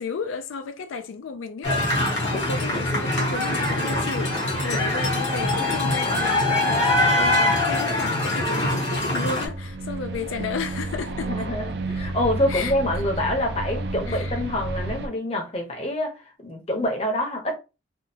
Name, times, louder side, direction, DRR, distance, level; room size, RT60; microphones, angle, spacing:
voice 1, 0.0-11.5 12.5-13.1 14.1-14.4, left 5 dB, 85° left, 0.4 m, -33 dB
sound 1, 1.6-9.5, left 1 dB, 70° left, 1.2 m, -23 dB
sound 2, 9.4-15.1, right 2 dB, 55° right, 0.4 m, -31 dB
voice 2, 11.2-17.6, left 1 dB, 30° left, 0.7 m, -26 dB
3.5 x 2.2 x 2.7 m
head